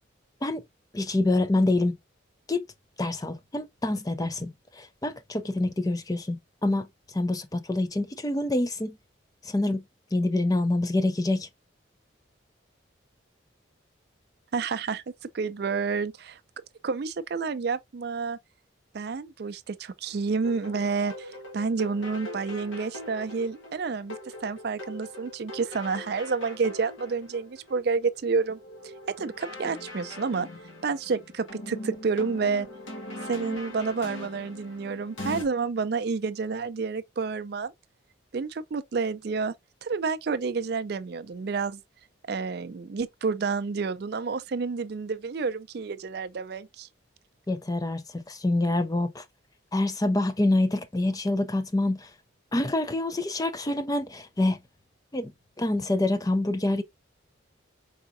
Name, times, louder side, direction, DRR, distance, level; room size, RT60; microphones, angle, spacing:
voice 1, 0.9-2.0 2.5-2.6 3.0-6.9 7.1-9.0 9.4-9.8 10.1-11.5 47.5-49.2 49.7-52.1 52.5-54.6 55.1-55.3 55.6-56.8, left 2 dB, 20° left, 0.4 m, -26 dB
voice 2, 14.5-15.0 15.3-16.4 16.8-18.4 18.9-28.6 29.1-30.5 30.8-32.7 33.2-37.7 38.3-39.5 39.8-41.8 42.3-46.9, right 4 dB, 55° right, 0.4 m, -29 dB
sound 1, 20.4-35.4, left 1 dB, 80° left, 1.7 m, -41 dB
4.9 x 3.5 x 2.6 m
head